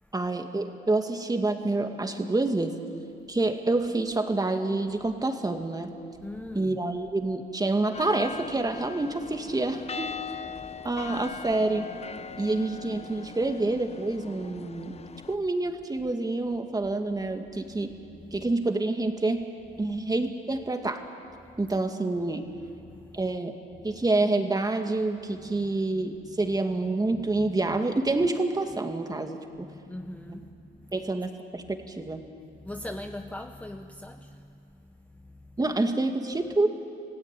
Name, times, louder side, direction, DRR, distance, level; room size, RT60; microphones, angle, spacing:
voice 1, 0.1-2.7 3.3-5.9 6.5-10.1 10.8-11.9 12.4-14.9 15.3-17.9 18.3-19.4 19.8-21.0 21.6-22.5 23.1-23.6 23.8-29.4 30.3-30.4 30.9-32.2 35.6-36.7, right 2 dB, 20° right, 5 dB, 2.2 m, -27 dB
voice 2, 6.2-6.8 10.6-10.9 15.2-15.3 17.7-17.8 18.2-18.4 19.9-20.0 21.4-21.5 22.8-23.3 23.9-24.0 25.4-26.6 27.1-27.8 29.6-31.0 32.6-35.6, left 1 dB, 5° left, 6 dB, 0.9 m, -43 dB
sound 1, 7.9-15.4, left 6 dB, 30° left, 0.7 m, -40 dB
27.0 x 17.0 x 9.1 m, 2.5 s
cardioid pair, 90°, 20 cm